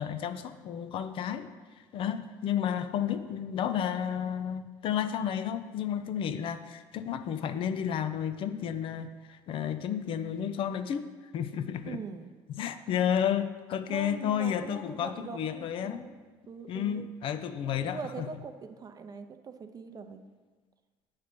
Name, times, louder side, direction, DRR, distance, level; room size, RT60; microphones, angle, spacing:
voice 1, 0.0-1.5 1.9-11.1 11.3-12.0 12.5-16.1 16.7-18.3, left 9 dB, 55° left, 10 dB, 0.4 m, -32 dB
voice 2, 11.9-12.3 13.9-16.2 16.5-17.0 17.6-20.2, right 5 dB, 35° right, 8 dB, 0.6 m, -42 dB
8.2 x 3.2 x 5.8 m, 1.4 s
supercardioid pair, 85°, 11 cm